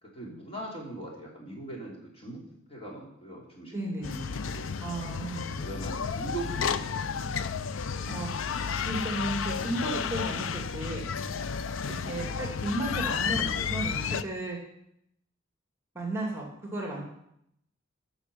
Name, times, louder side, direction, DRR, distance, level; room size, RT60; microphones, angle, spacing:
voice 1, 0.0-2.4 2.7-3.8 4.0-4.2 4.4-4.7 5.6-7.3 12.0-12.4, right 2 dB, 30° left, -3 dB, 3.2 m, -41 dB
voice 2, 3.7-4.3 4.8-5.6 8.1-8.3 8.9-11.0 12.1-14.6 15.9-17.0, right 1 dB, 15° right, -1 dB, 2.3 m, -34 dB
sound 1, 4.0-14.2, left 6 dB, 80° left, 0.5 m, -32 dB
12.0 x 6.4 x 7.0 m, 0.76 s
head